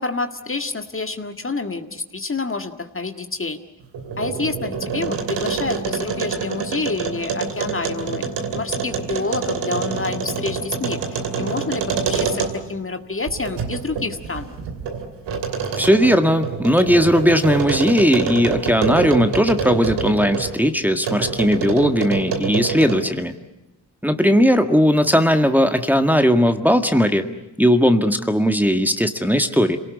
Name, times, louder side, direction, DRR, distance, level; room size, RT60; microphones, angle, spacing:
voice 1, 0.0-3.6 4.2-14.5, left 3 dB, 30° left, 7 dB, 1.9 m, -28 dB
sound 1, 3.8-12.8 13.3-20.6 21.0-23.1, right 5 dB, 80° right, 3.0 m, -26 dB
voice 2, 15.8-23.3 24.0-27.3 27.6-29.8, equal, 5° right, 6 dB, 1.8 m, -17 dB
27.0 x 18.5 x 8.4 m, 1.0 s
supercardioid pair, 45°, 41 cm